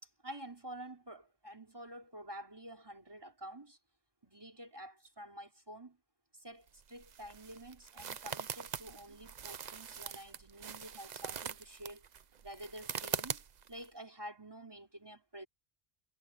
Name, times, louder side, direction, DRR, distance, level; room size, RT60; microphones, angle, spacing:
voice 1, 0.0-3.8 4.2-6.0 6.3-12.0 12.4-15.5, right 1 dB, 25° right, 3.6 m, -49 dB
sound 1, 6.7-13.9, right 7 dB, 50° right, 0.7 m, -43 dB
omnidirectional pair, 1.1 m